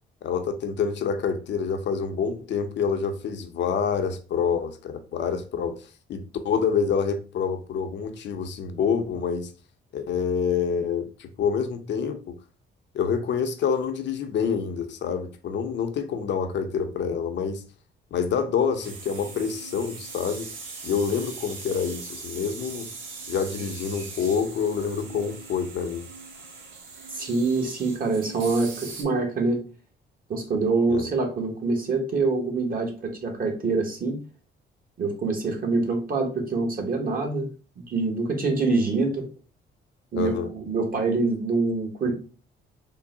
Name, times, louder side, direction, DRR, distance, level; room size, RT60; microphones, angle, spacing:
voice 1, 0.2-9.5 9.9-12.4 12.9-17.6 18.1-20.5 20.8-22.9 23.3-26.1 30.9-31.1 40.2-40.5, left 6 dB, 65° left, 0.6 m, -27 dB
sound 1, 18.7-29.0, right 4 dB, 90° right, 1.0 m, -40 dB
voice 2, 27.1-29.6 30.3-34.2 35.0-37.5 37.8-39.3 40.1-42.1, right 3 dB, 45° right, 1.1 m, -25 dB
3.8 x 2.0 x 3.7 m
cardioid pair, 90°, 20 cm